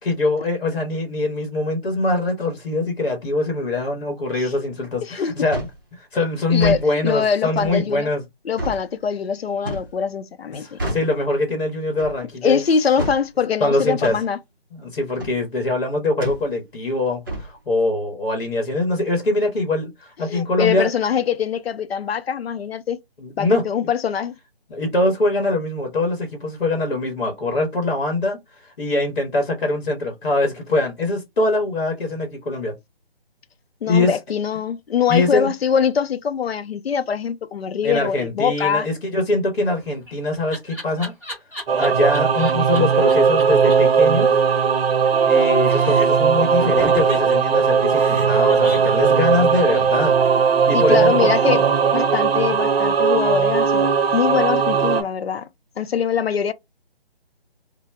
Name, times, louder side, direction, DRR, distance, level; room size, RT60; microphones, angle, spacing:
voice 1, 0.0-5.7 6.0-8.2 10.5-12.6 13.6-14.2 14.7-20.9 23.2-23.6 24.7-28.4 28.6-32.7 33.9-34.2 35.1-35.5 37.8-41.1 41.8-44.3 45.3-50.1 50.7-51.3, left 2 dB, 55° left, 1.0 m, -23 dB
voice 2, 5.0-5.3 6.5-8.1 8.5-10.8 12.4-14.4 20.3-23.0 23.4-24.3 33.8-38.9 50.7-55.5 55.8-56.5, left 7 dB, 75° left, 0.5 m, -23 dB
sound 1, 5.5-5.8 6.5-6.8 7.6-7.8 8.6-8.8 9.6-9.9 10.8-11.1 12.0-12.2 13.0-13.2 14.0-14.2 15.2-15.4 16.2-16.4 17.3-17.5, right 1 dB, 20° right, 0.5 m, -28 dB
Laughter, 39.7-42.8 43.1-43.2 43.4-43.5 43.7-43.8 44.0-45.4 45.6-46.3 46.8-50.5, equal, 5° left, 0.8 m, -35 dB
Singing / Musical instrument, 41.7-55.0, right 6 dB, 70° right, 0.6 m, -18 dB
2.1 x 2.0 x 3.2 m
figure-of-eight pair, 150°, 31 cm